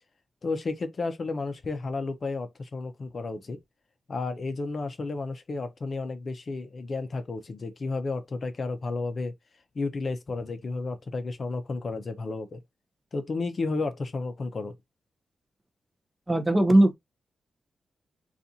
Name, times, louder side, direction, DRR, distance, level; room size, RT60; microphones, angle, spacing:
voice 1, 0.4-3.6 4.1-9.3 9.7-12.6 13.1-14.7, left 3 dB, 40° left, 0.6 m, -32 dB
voice 2, 16.3-16.9, right 1 dB, 15° right, 0.6 m, -19 dB
4.0 x 2.4 x 2.7 m
wide cardioid pair, 165°, 0 cm